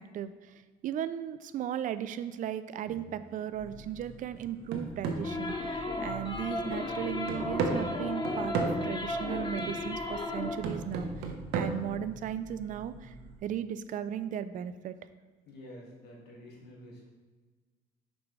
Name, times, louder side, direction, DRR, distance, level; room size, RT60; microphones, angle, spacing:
voice 1, 0.0-13.1 13.4-15.0, right 10 dB, 50° right, 13 dB, 0.4 m, -36 dB
sound 1, 2.9-3.2 3.7-3.8 4.3-6.3 6.7-6.8 7.3-8.9 9.6-9.8 10.6-11.7, right 4 dB, 80° right, 0.9 m, -35 dB
sound 2, 3.5-13.4, right 2 dB, 15° left, 1.8 m, -50 dB
sound 3, 5.2-10.7, left 2 dB, 30° left, 0.8 m, -34 dB
voice 2, 15.5-17.1, equal, 75° left, -2 dB, 1.8 m, -49 dB
6.7 x 5.2 x 3.2 m, 1.3 s
cardioid pair, 110°, 17 cm